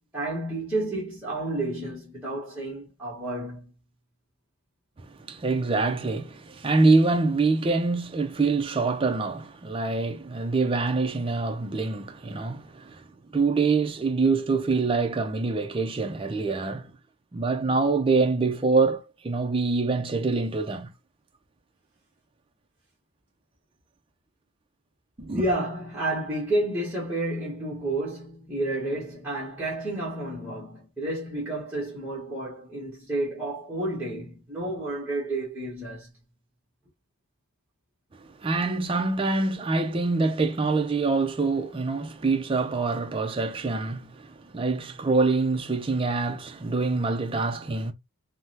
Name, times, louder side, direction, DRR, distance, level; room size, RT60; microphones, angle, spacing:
voice 1, 0.1-3.7 25.3-36.1, right 1 dB, 10° right, 1.0 m, -30 dB
voice 2, 5.1-13.0 13.3-16.9 17.3-20.9 25.2-25.4 38.2-47.9, right 3 dB, 25° right, 0.4 m, -25 dB
3.4 x 2.1 x 2.7 m
head